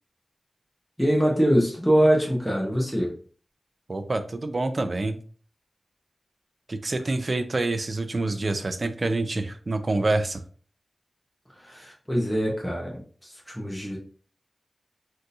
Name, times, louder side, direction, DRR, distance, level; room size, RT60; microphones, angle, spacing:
voice 1, 1.0-3.1 11.5-14.0, equal, 5° left, -3 dB, 0.8 m, -24 dB
voice 2, 3.9-5.2 6.7-10.4, right 2 dB, 45° right, 10 dB, 0.4 m, -27 dB
3.5 x 2.7 x 2.6 m, 0.44 s
wide cardioid pair, 105°, 0 cm